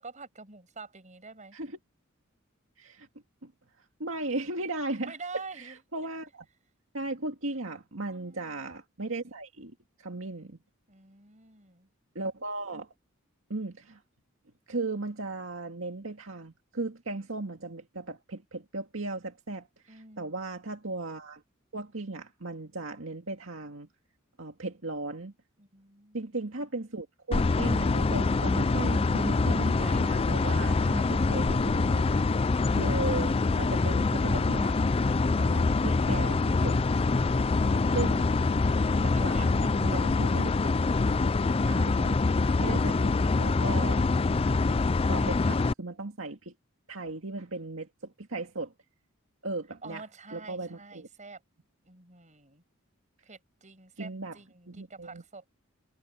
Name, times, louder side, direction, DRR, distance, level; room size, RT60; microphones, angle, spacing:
voice 1, 0.0-1.6 5.0-5.8 8.1-8.7 10.9-11.9 19.9-20.4 25.6-26.4 39.3-39.7 49.8-51.4 51.8-52.6 53.2-55.5, right 4 dB, 35° right, 6.3 m, -47 dB
voice 2, 2.8-3.1 3.4-3.5 4.0-5.2 5.6-6.4 6.9-10.6 12.1-12.9 13.5-14.0 14.7-21.4 21.7-23.9 24.4-25.3 26.1-32.3 32.7-34.8 35.4-36.8 37.9-38.3 39.0-39.4 39.6-41.3 41.6-42.2 42.6-44.1 45.1-46.5 46.9-48.7 49.4-50.0 50.3-51.1 54.0-54.4 54.7-55.2, right 2 dB, 70° right, 2.2 m, -36 dB
sound 1, 27.3-45.7, left 3 dB, 30° left, 0.4 m, -25 dB
head